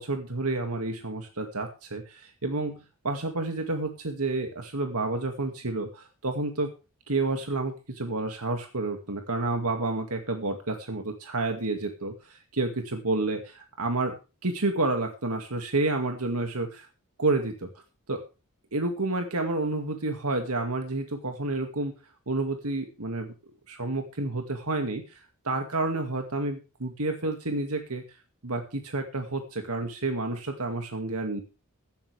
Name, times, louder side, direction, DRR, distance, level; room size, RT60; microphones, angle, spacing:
voice 1, 0.0-6.7 7.1-14.2 14.4-16.9 17.2-17.7 18.1-18.2 18.7-21.9 22.3-23.3 23.7-28.0 28.4-31.4, right 2 dB, 80° right, 5 dB, 2.2 m, -30 dB
16.0 x 13.0 x 3.5 m, 0.32 s
head